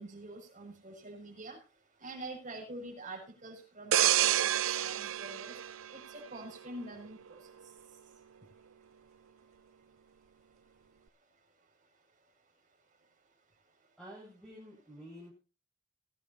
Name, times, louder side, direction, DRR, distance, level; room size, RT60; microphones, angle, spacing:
voice 1, 0.0-1.6 2.0-5.5 5.9-7.4, right 2 dB, 40° right, 0 dB, 6.7 m, -46 dB
sound 1, 3.9-6.6 7.1-7.3, right 11 dB, 80° right, 0.5 m, -29 dB
voice 2, 14.0-15.3, equal, ahead, -8 dB, 7.4 m, -50 dB
21.5 x 11.5 x 2.9 m, 0.32 s
head